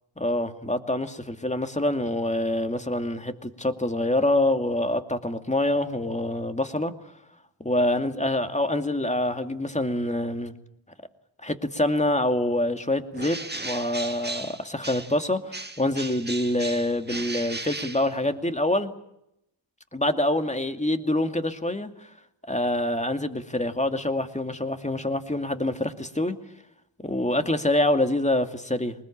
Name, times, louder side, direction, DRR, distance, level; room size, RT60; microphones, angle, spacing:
voice 1, 0.2-6.9 7.6-10.5 11.4-13.4 13.6-18.9 19.9-22.1 22.5-26.4 27.0-28.9, left 1 dB, 15° left, 7 dB, 2.5 m, -26 dB
Bird, 13.1-15.2 15.5-18.6, right 2 dB, 20° right, 1.7 m, -36 dB
23.5 x 20.5 x 8.8 m, 0.80 s
cardioid pair, 60°, 46 cm